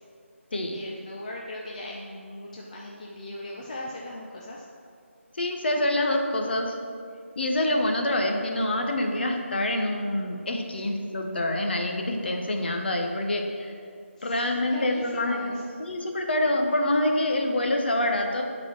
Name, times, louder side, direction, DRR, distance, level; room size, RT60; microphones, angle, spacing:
voice 1, 0.7-4.7 10.8-11.0 14.2-15.6, left 1 dB, 35° left, -3 dB, 0.6 m, -39 dB
voice 2, 5.3-6.7 7.4-13.7 14.2-18.4, left 1 dB, 50° left, 3 dB, 1.0 m, -26 dB
12.5 x 4.3 x 4.4 m, 2.3 s
figure-of-eight pair, 165°, 7 cm